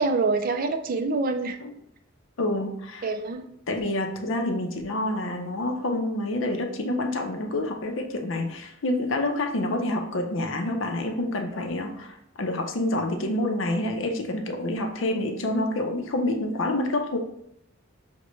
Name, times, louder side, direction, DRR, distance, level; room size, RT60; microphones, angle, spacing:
voice 1, 0.0-1.6 3.0-3.5, right 3 dB, 45° right, 8 dB, 0.3 m, -25 dB
voice 2, 2.4-3.1 3.7-17.2, left 1 dB, 65° left, 4 dB, 0.6 m, -28 dB
6.1 x 2.1 x 3.1 m, 0.75 s
head